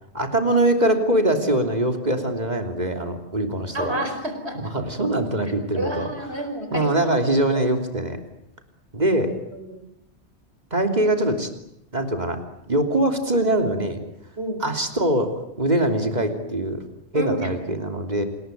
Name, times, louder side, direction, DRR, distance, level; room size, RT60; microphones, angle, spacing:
voice 1, 0.1-4.0 4.5-6.1 6.7-8.2 8.9-9.3 10.7-11.5 11.9-12.4 12.7-14.0 14.6-16.8 17.1-18.2, right 1 dB, 40° right, 5 dB, 3.3 m, -23 dB
voice 2, 3.7-4.7 5.7-6.9 9.5-9.8 14.4-14.6 17.1-17.5, right 1 dB, 70° right, 6 dB, 5.1 m, -29 dB
27.5 x 20.0 x 9.2 m, 0.82 s
omnidirectional pair, 1.1 m